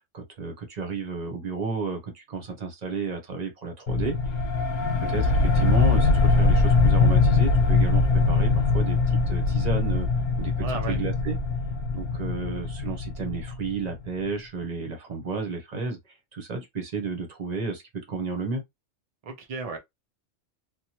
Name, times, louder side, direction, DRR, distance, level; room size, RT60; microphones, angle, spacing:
voice 1, 0.1-4.1 5.0-10.1 10.4-11.4 11.9-17.8 18.1-18.6, right 4 dB, 40° right, 0.8 m, -32 dB
sound 1, 3.9-14.1, left 3 dB, 70° left, 1.1 m, -22 dB
voice 2, 10.6-11.0 19.2-19.8, right 3 dB, 65° right, 0.3 m, -33 dB
3.0 x 2.2 x 2.8 m
omnidirectional pair, 1.3 m